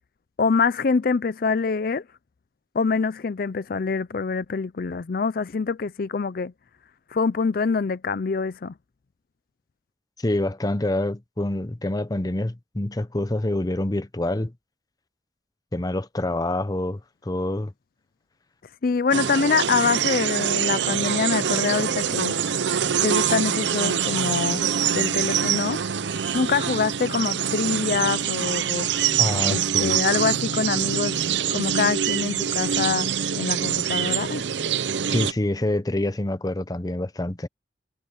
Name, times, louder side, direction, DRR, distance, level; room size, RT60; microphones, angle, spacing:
voice 1, 0.4-2.0 2.7-6.5 7.1-8.7 18.8-22.4 23.0-24.6 24.9-25.8 26.3-28.9 29.5-31.2 31.5-34.4, left 5 dB, 55° left, 0.5 m, -25 dB
voice 2, 10.2-14.5 15.7-17.7 29.2-30.0 35.1-37.5, left 1 dB, 20° left, 0.7 m, -26 dB
sound 1, 19.1-35.3, right 8 dB, 85° right, 0.6 m, -25 dB
head